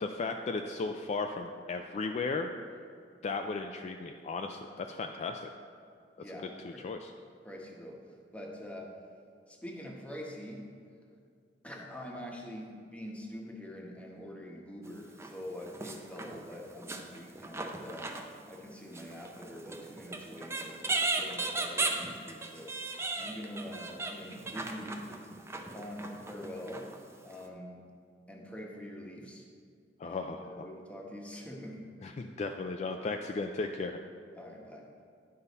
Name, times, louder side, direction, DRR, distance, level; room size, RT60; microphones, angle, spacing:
voice 1, 0.0-2.5 3.2-5.5 6.6-7.1 30.0-30.7 32.0-34.0, left 3 dB, 40° left, 5 dB, 0.3 m, -35 dB
voice 2, 6.2-6.8 7.4-8.9 9.5-10.7 11.6-18.1 18.5-20.8 21.2-25.0 25.5-26.9 27.2-27.8 28.3-29.4 30.0-31.9 34.4-34.9, equal, 10° left, -1 dB, 1.0 m, -45 dB
sound 1, 14.9-15.3 15.6-18.7 18.9-27.0 27.4-27.5, right 2 dB, 15° right, 0.5 m, -37 dB
9.8 x 5.5 x 4.1 m, 2.3 s
head